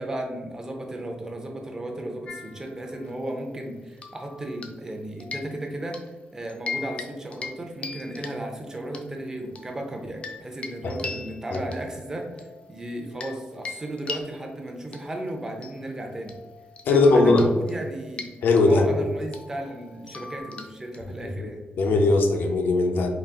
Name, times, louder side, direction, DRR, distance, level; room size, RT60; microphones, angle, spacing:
voice 1, 0.0-6.0 6.3-12.4 12.7-16.4 16.9-18.3 18.6-21.6, right 1 dB, 20° right, 2 dB, 0.5 m, -34 dB
sound 1, 2.3-3.3 4.0-4.9 5.2-6.1 6.5-7.1 7.3-7.6 7.8-9.0 9.6-13.4 13.7-21.3, left 4 dB, 35° left, 0.4 m, -40 dB
voice 2, 16.9-17.5 18.4-18.8 21.2-21.5 21.8-23.1, left 3 dB, 85° left, 3 dB, 0.6 m, -19 dB
3.9 x 2.4 x 3.5 m, 1.3 s
wide cardioid pair, 160°, 3 cm